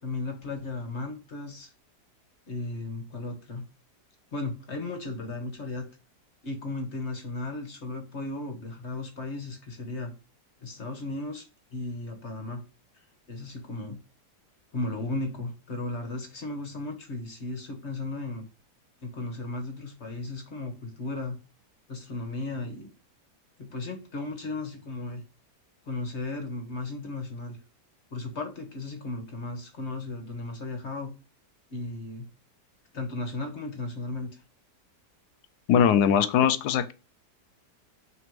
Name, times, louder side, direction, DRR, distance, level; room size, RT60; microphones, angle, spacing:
voice 1, 0.0-1.7 2.5-3.6 4.3-5.9 6.4-10.1 10.6-11.4 11.7-12.6 12.9-14.0 14.7-18.5 19.0-21.4 21.9-22.9 23.6-25.2 25.9-27.6 28.1-31.1 31.7-32.3 32.9-34.4, left 2 dB, 45° left, 1.1 m, -35 dB
voice 2, 35.7-36.9, left 8 dB, 80° left, 1.2 m, -21 dB
6.1 x 3.2 x 5.2 m
omnidirectional pair, 1.8 m